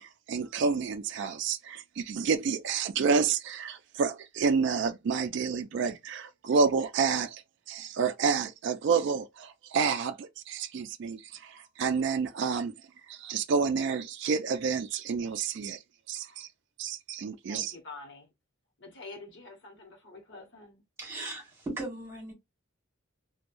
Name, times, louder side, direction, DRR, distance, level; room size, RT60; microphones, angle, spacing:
voice 1, 0.0-7.4 7.7-12.7 13.1-15.8 16.1-16.5 16.8-17.7, right 5 dB, 55° right, 0.3 m, -29 dB
voice 2, 17.5-18.3 18.8-20.8, left 3 dB, 60° left, 1.0 m, -47 dB
voice 3, 21.0-22.3, right 2 dB, 15° right, 1.6 m, -37 dB
3.0 x 2.2 x 2.5 m
head